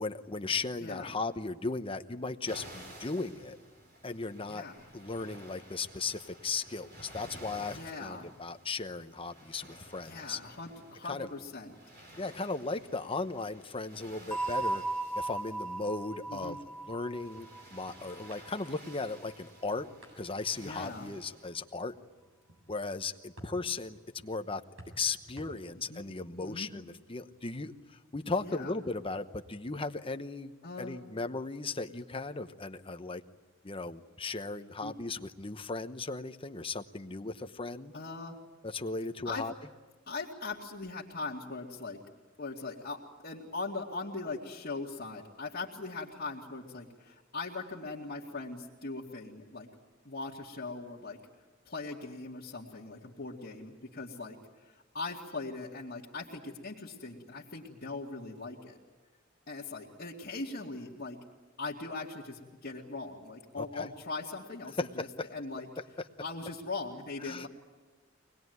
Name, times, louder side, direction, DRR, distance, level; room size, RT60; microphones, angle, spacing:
voice 1, 0.0-3.6 4.0-4.6 4.9-10.4 11.0-11.3 12.2-14.8 15.1-16.6 16.9-19.9 20.1-21.9 22.7-24.6 25.0-30.5 30.8-33.2 33.6-37.9 38.6-39.5 63.6-63.9 64.8-65.3 67.2-67.5, left 3 dB, 25° left, 8 dB, 0.9 m, -36 dB
voice 2, 0.8-1.2 4.5-4.7 7.7-8.3 10.0-11.7 16.3-16.6 20.6-21.1 25.9-26.0 26.4-26.7 28.4-28.7 30.6-31.0 34.8-34.9 37.9-38.4 39.2-39.4 40.1-42.0 42.4-49.7 50.0-51.2 51.7-58.8 59.5-61.2 61.6-65.7 66.2-67.5, left 3 dB, 50° left, -6 dB, 2.3 m, -40 dB
sound 1, 2.4-21.5, right 1 dB, 55° right, 4.5 m, -53 dB
sound 2, 14.3-18.9, right 2 dB, 5° left, 1.2 m, -37 dB
sound 3, 17.1-27.9, equal, 75° right, 7.9 m, -58 dB
24.5 x 20.5 x 9.5 m, 1.3 s
head